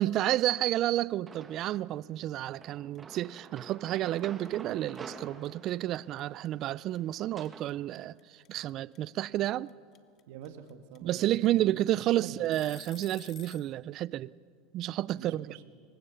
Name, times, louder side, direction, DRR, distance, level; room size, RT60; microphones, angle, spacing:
voice 1, 0.0-9.7 11.0-14.3 14.7-15.5, right 14 dB, 50° right, 0.4 m, -30 dB
sound 1, 1.3-1.9 2.6-7.7, right 4 dB, 25° right, 1.8 m, -49 dB
sound 2, 2.4-2.7 2.9-13.7, left 11 dB, 45° left, 1.2 m, -53 dB
voice 2, 10.3-11.7 12.2-12.4 15.2-15.7, right 9 dB, 70° right, 1.5 m, -47 dB
22.5 x 19.5 x 6.9 m
supercardioid pair, 100°, 0 cm